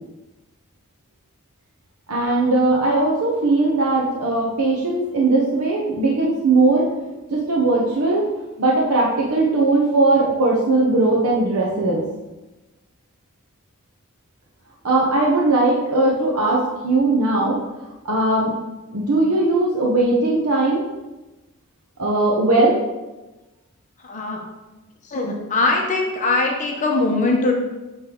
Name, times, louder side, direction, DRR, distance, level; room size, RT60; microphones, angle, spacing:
voice 1, 2.1-6.9 7.3-8.3 8.6-12.0 14.8-17.6 18.0-18.6 18.9-20.9 22.0-22.8, right 2 dB, 90° right, -3 dB, 0.9 m, -19 dB
voice 2, 24.0-24.4 25.0-27.5, left 3 dB, 35° left, 0 dB, 1.0 m, -21 dB
8.7 x 3.3 x 3.8 m, 1.1 s
head